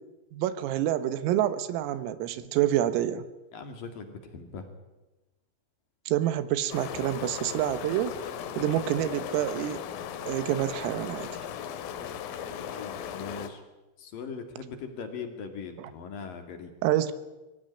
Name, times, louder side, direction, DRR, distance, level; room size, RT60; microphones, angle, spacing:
voice 1, 0.3-3.3 6.1-8.2 8.6-9.8 10.3-11.3 15.8-15.9 16.8-17.1, right 12 dB, 85° right, 12 dB, 3.8 m, -27 dB
voice 2, 3.5-4.7 12.5-13.6 14.0-16.7, left 5 dB, 50° left, 6 dB, 3.4 m, -40 dB
sound 1, 6.7-13.5, left 9 dB, 80° left, 4.0 m, -37 dB
23.5 x 16.5 x 10.0 m, 1.1 s
omnidirectional pair, 5.9 m